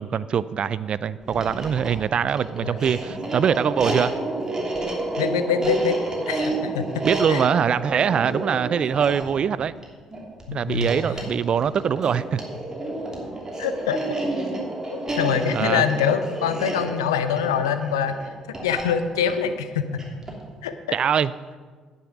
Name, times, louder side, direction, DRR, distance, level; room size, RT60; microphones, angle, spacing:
voice 1, 0.0-4.1 7.0-9.7 10.5-12.4 15.5-15.9 20.9-21.3, right 7 dB, 45° right, 18 dB, 0.4 m, -23 dB
sound 1, 1.2-20.5, right 2 dB, 25° right, 2.7 m, -30 dB
voice 2, 5.2-6.0 6.3-7.4 10.5-10.9 13.6-14.0 14.9-18.1 18.6-19.8 20.6-21.0, left 7 dB, 80° left, 10 dB, 0.6 m, -24 dB
10.5 x 8.4 x 5.9 m, 1.5 s
figure-of-eight pair, 45°, 2 cm